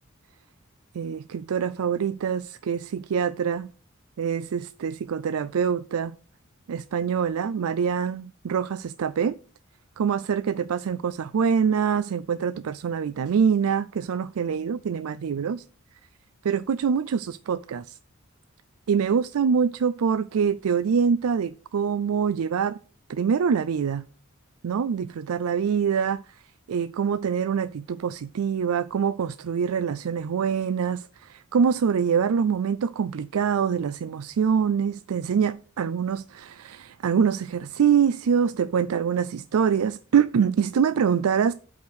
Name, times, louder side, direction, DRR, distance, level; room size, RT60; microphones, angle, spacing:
voice 1, 0.9-3.7 4.2-6.2 6.7-9.4 10.0-15.6 16.4-18.0 18.9-22.8 23.1-24.1 24.6-41.5, right 7 dB, 90° right, 0.4 m, -25 dB
8.2 x 5.0 x 6.3 m
head